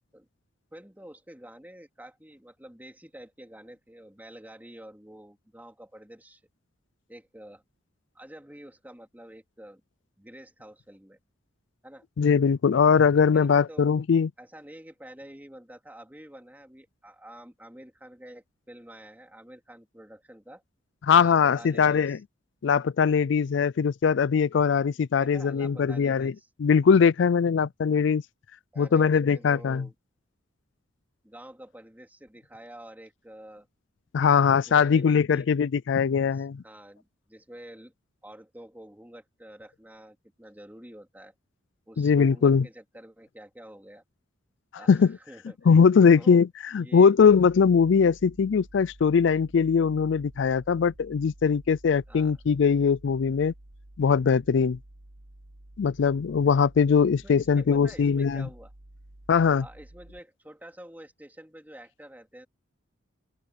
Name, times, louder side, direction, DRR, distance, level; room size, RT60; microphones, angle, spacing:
voice 1, 0.7-6.4 7.1-7.6 8.1-9.8 10.2-11.2 11.8-12.0 13.0-13.9 14.4-20.6 21.1-22.2 25.1-26.5 28.7-29.9 31.2-33.7 34.2-34.3 34.7-35.5 36.2-37.9 38.2-41.3 41.9-44.0 44.7-45.6 46.1-46.4 46.8-47.1 52.1-52.4 57.2-58.7 59.6-62.5, right 1 dB, 10° right, 3.0 m, -48 dB
voice 2, 12.2-14.3 21.0-22.2 22.6-26.3 26.6-28.2 28.8-29.9 34.1-36.6 42.0-42.7 44.9-45.1 45.7-53.5 54.0-54.8 55.8-58.5 59.3-59.6, left 6 dB, 65° left, 0.4 m, -21 dB
sound 1, 47.3-60.2, right 1 dB, 70° right, 1.4 m, -51 dB
open air
head